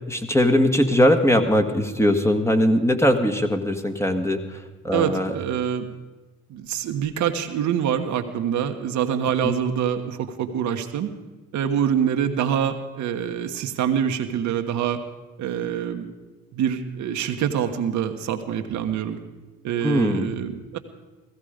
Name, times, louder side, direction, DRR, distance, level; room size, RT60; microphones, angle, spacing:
voice 1, 0.1-4.4 4.8-5.3 9.4-9.6 19.8-20.3, equal, 10° left, 4 dB, 1.6 m, -20 dB
voice 2, 4.9-5.9 6.5-11.1 11.5-15.0 15.4-16.1 16.5-19.2 19.6-20.8, right 9 dB, 70° right, 6 dB, 1.2 m, -25 dB
16.0 x 15.5 x 5.1 m, 1.2 s
supercardioid pair, 65°, 30 cm